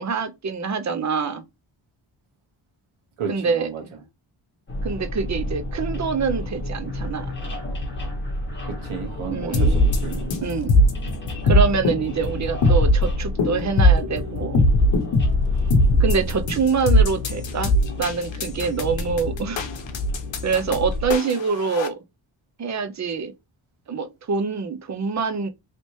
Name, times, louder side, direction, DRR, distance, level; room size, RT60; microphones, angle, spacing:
voice 1, 0.0-1.4 3.3-3.7 4.8-7.3 9.3-9.8 10.4-10.8 11.4-14.6 15.9-17.7 18.0-19.6 20.4-22.0 22.6-23.3 23.9-25.5, right 5 dB, 35° right, 0.5 m, -25 dB
voice 2, 3.2-3.8 8.7-10.3, right 6 dB, 90° right, 1.3 m, -33 dB
sound 1, 4.7-21.0, left 2 dB, 25° left, 1.1 m, -32 dB
sound 2, 9.5-21.9, left 1 dB, 65° left, 0.8 m, -19 dB
3.3 x 2.8 x 3.0 m
wide cardioid pair, 180°, 48 cm